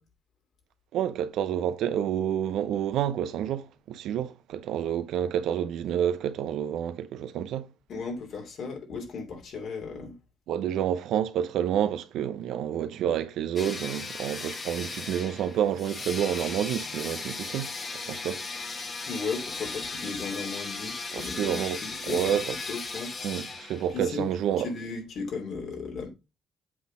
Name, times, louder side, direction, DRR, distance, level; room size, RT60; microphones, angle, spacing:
voice 1, 0.9-7.7 10.5-17.7 18.1-18.4 21.1-22.5 23.2-24.7, right 10 dB, 85° right, 0.7 m, -29 dB
voice 2, 7.9-10.2 19.1-23.2 23.9-24.3 24.6-26.1, left 4 dB, 65° left, 2.8 m, -36 dB
sound 1, 13.6-24.1, left 3 dB, 35° left, 1.4 m, -37 dB
7.8 x 4.1 x 5.0 m
cardioid pair, 90°, 0 cm